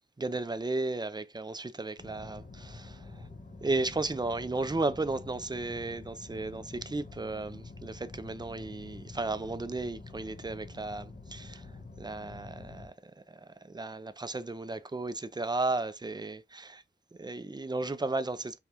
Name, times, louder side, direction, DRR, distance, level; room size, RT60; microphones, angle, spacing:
voice 1, 0.2-3.3 3.6-11.7 12.0-16.8 17.2-18.6, right 2 dB, 20° right, 0.5 m, -34 dB
sound 1, 2.0-12.9, left 3 dB, 45° left, 1.0 m, -47 dB
5.3 x 2.4 x 3.0 m
wide cardioid pair, 65°, 20 cm